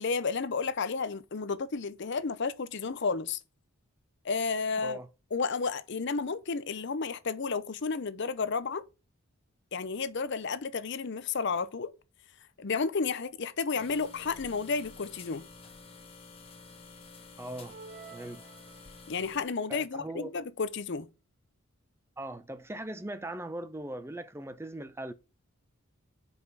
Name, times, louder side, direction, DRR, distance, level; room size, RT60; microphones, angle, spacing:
voice 1, 0.0-3.4 4.2-5.0 5.3-8.8 9.7-11.9 12.6-15.4 19.1-21.1, left 4 dB, 50° left, 0.6 m, -32 dB
voice 2, 4.8-5.1 17.4-17.8 18.1-18.5 19.7-20.3 22.2-25.1, right 1 dB, 10° right, 0.5 m, -40 dB
sound 1, 13.7-19.4, left 4 dB, 25° left, 1.1 m, -50 dB
sound 2, 17.6-19.3, right 4 dB, 50° right, 1.7 m, -50 dB
5.2 x 4.9 x 6.0 m
head